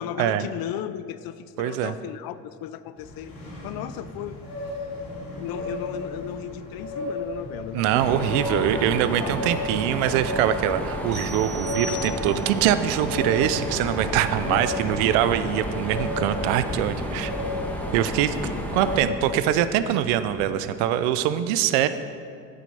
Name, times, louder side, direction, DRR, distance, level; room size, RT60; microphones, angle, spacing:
voice 1, 0.0-3.3 3.6-4.4 4.8-4.9 5.4-8.3 8.6-9.5 14.4-14.6 18.4-18.7, left 11 dB, 65° left, 14 dB, 0.5 m, -36 dB
voice 2, 1.6-1.9 7.7-17.3 17.9-18.4 18.7-21.9, right 11 dB, 90° right, 12 dB, 0.6 m, -23 dB
sound 1, 3.0-20.4, left 2 dB, 80° left, 2.7 m, -35 dB
Mechanisms, 7.9-19.0, equal, 5° left, 1.4 m, -31 dB
sound 2, 11.1-12.6, left 1 dB, 15° right, 1.7 m, -38 dB
8.2 x 7.8 x 5.5 m, 2.3 s
supercardioid pair, 90°, 39 cm